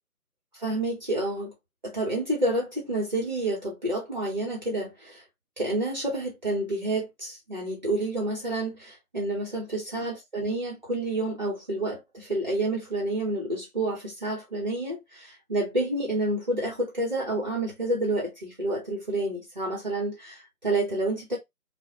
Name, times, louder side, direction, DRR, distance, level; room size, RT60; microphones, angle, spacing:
voice 1, 0.5-1.5 1.8-5.2 5.6-21.4, right 2 dB, 30° right, 0.8 m, -29 dB
2.5 x 2.2 x 3.7 m
figure-of-eight pair, 155°, 45 cm